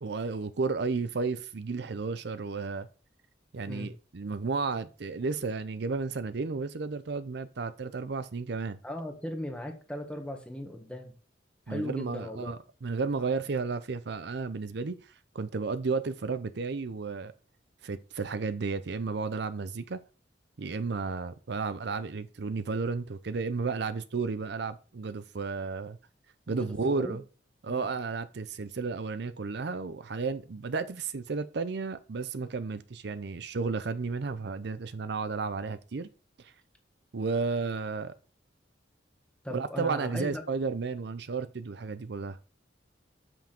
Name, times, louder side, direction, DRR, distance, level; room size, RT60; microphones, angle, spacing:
voice 1, 0.0-2.9 3.5-8.8 11.7-12.6 12.8-15.0 15.3-17.3 17.8-20.0 20.6-26.0 26.5-27.2 27.6-36.1 37.1-38.1 39.5-42.4, right 4 dB, 65° right, 0.6 m, -33 dB
voice 2, 8.8-11.1 11.7-12.5 26.5-27.2 27.7-27.9 39.4-40.4, left 1 dB, 5° left, 1.4 m, -38 dB
7.2 x 5.8 x 4.4 m
head